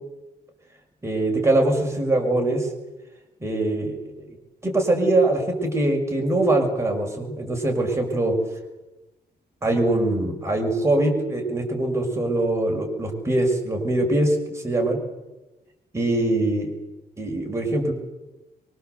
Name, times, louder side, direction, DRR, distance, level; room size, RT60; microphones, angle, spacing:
voice 1, 1.0-2.7 3.4-4.4 4.6-8.4 9.6-15.0 15.9-16.7 17.2-17.9, right 2 dB, 15° right, 2 dB, 6.1 m, -23 dB
25.5 x 23.5 x 8.2 m, 1.1 s
wide cardioid pair, 135°, 17 cm